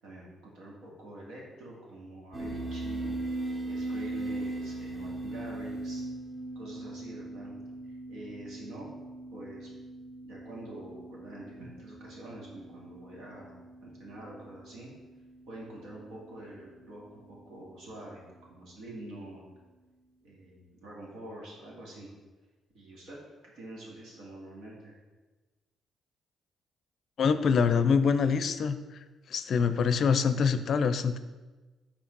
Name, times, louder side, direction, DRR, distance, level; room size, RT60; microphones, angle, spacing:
voice 1, 0.0-3.2 3.6-6.0 6.6-7.5 8.1-8.9 9.3-9.7 10.2-14.9 15.5-19.4 20.2-22.1 22.7-23.2 23.5-24.9, right 1 dB, 85° right, -3 dB, 2.1 m, -46 dB
sound 1, 2.3-17.4, right 2 dB, 30° right, 1.3 m, -40 dB
voice 2, 27.2-28.8 29.3-31.2, left 6 dB, 60° left, 11 dB, 0.4 m, -25 dB
5.9 x 4.3 x 5.3 m, 1.2 s
cardioid pair, 90°, 0 cm